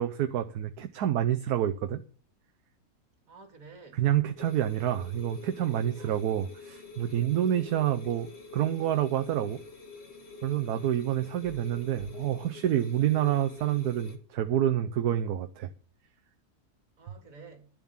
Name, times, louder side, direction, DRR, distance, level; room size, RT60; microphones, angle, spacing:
voice 1, 0.0-2.0 3.9-9.6 10.4-15.7, right 11 dB, 80° right, 1.3 m, -28 dB
voice 2, 3.3-4.0 6.0-6.3 10.6-10.9 17.0-17.7, right 4 dB, 60° right, 2.6 m, -51 dB
sound 1, 4.4-14.2, left 4 dB, 45° left, 1.9 m, -47 dB
12.0 x 7.3 x 7.2 m
omnidirectional pair, 1.6 m